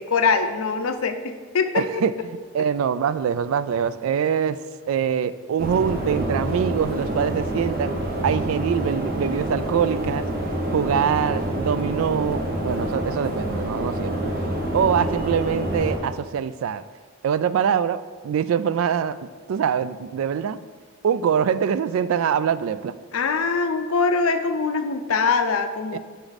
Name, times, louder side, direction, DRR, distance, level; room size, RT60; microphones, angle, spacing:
voice 1, 0.0-1.8 23.1-26.0, left 4 dB, 90° left, 8 dB, 0.6 m, -23 dB
voice 2, 1.7-2.1 2.5-4.6 4.9-8.0 8.2-10.3 10.7-14.3 14.7-16.8 17.2-19.2 19.5-20.6 21.0-22.9 25.9-26.0, right 7 dB, 80° right, 14 dB, 0.3 m, -24 dB
sound 1, 5.6-16.0, right 1 dB, 45° right, 1.2 m, -27 dB
6.6 x 6.1 x 4.0 m, 1.5 s
head